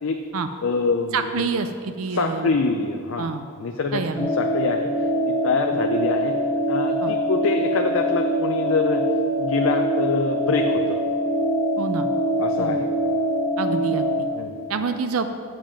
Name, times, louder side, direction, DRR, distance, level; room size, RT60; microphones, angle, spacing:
voice 1, 0.6-1.5 2.1-3.3 3.6-4.9 5.3-6.3 6.7-9.1 9.4-11.0 12.4-12.9 14.3-14.6, left 4 dB, 70° left, 4 dB, 0.5 m, -25 dB
voice 2, 1.1-2.6 3.2-3.5 3.9-4.3 7.0-7.1 11.8-12.1 12.6-12.9 13.6-14.3 14.7-15.3, right 4 dB, 80° right, 9 dB, 0.5 m, -27 dB
sound 1, 4.2-14.2, equal, 20° left, 1.2 m, -23 dB
7.3 x 6.8 x 7.5 m, 2.2 s
head